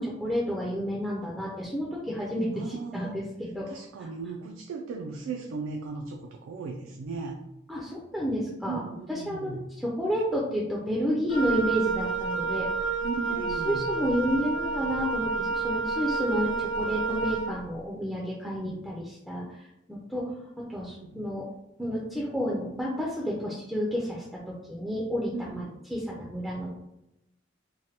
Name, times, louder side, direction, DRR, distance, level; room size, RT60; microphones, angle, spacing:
voice 1, 0.0-3.1 3.4-3.7 7.7-8.8 9.1-12.7 13.3-19.6 19.9-21.5 21.8-25.6 25.9-26.7, equal, ahead, -5 dB, 0.3 m, -30 dB
voice 2, 2.5-3.2 3.7-7.4 8.7-9.6 13.0-13.9 18.6-18.8 20.9-21.2 25.3-25.7, right 4 dB, 85° right, 2 dB, 0.3 m, -37 dB
Wind instrument woodwind instrument, 11.3-17.5, right 4 dB, 80° left, 0.7 m, -30 dB
3.1 x 2.1 x 2.7 m, 0.87 s
head